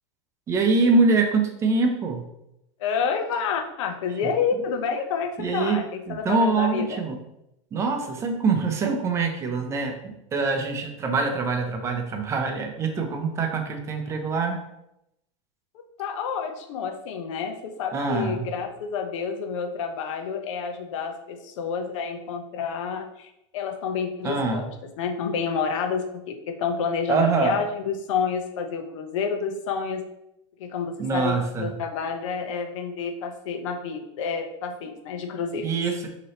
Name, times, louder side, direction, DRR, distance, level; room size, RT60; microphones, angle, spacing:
voice 1, 0.5-2.2 5.4-5.8 6.1-7.2 7.7-9.9 10.3-14.6 17.9-18.5 24.2-24.6 27.1-27.6 31.0-31.7 35.6-36.1, right 4 dB, 15° right, 3 dB, 0.6 m, -24 dB
voice 2, 2.8-7.0 16.0-24.7 25.0-30.0 30.6-35.7, left 6 dB, 75° left, 4 dB, 0.9 m, -29 dB
6.1 x 3.0 x 2.9 m, 0.83 s
supercardioid pair, 160°, 16 cm